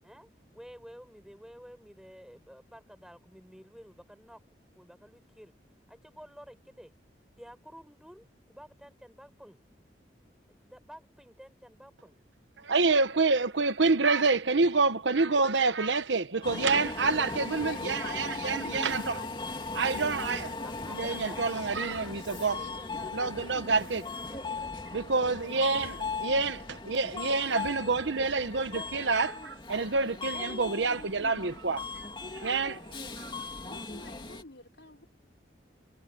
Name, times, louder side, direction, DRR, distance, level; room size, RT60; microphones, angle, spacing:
voice 1, 0.0-4.4 4.7-5.5 5.9-6.9 7.4-9.6 10.5-12.2 20.6-25.9, equal, 5° right, 6.3 m, -52 dB
voice 2, 12.6-19.2 19.7-20.5 20.9-22.6 23.1-24.0 24.9-31.8 32.4-32.8 33.2-33.3, right 4 dB, 80° right, 1.1 m, -27 dB
Subway metro underground, 16.4-34.4, left 3 dB, 25° left, 2.7 m, -38 dB
voice 3, 17.6-19.4 20.1-20.9 33.6-35.1, left 2 dB, 80° left, 4.1 m, -45 dB
head